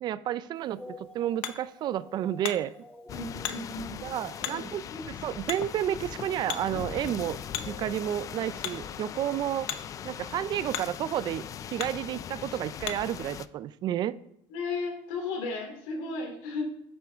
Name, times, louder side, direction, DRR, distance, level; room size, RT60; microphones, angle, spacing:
voice 1, 0.0-2.7 4.0-4.8 5.2-7.4 7.7-9.7 10.0-11.4 11.7-14.2, right 11 dB, 40° right, 16 dB, 0.4 m, -31 dB
Hammer, 0.6-13.2, left 10 dB, 60° left, 0.8 m, -42 dB
sound 1, 0.8-9.9, left 1 dB, 5° left, 1.2 m, -52 dB
voice 2, 3.1-3.9 4.4-5.0 14.5-16.6, left 3 dB, 80° left, 3 dB, 3.0 m, -35 dB
sound 2, 3.1-13.5, left 9 dB, 30° left, 0.3 m, -40 dB
9.5 x 9.4 x 3.5 m, 0.73 s
cardioid pair, 140°, 11 cm